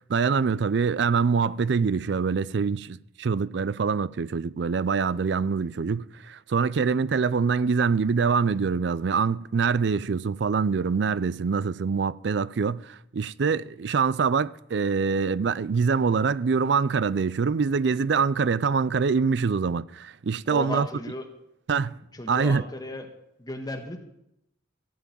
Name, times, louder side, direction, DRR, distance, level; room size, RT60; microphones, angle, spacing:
voice 1, 0.1-20.9 21.7-21.9 22.3-22.6, right 5 dB, 60° right, 0.4 m, -24 dB
voice 2, 20.5-21.2 22.1-23.1 23.4-24.0, left 1 dB, 20° left, 1.5 m, -34 dB
15.0 x 5.9 x 9.2 m
head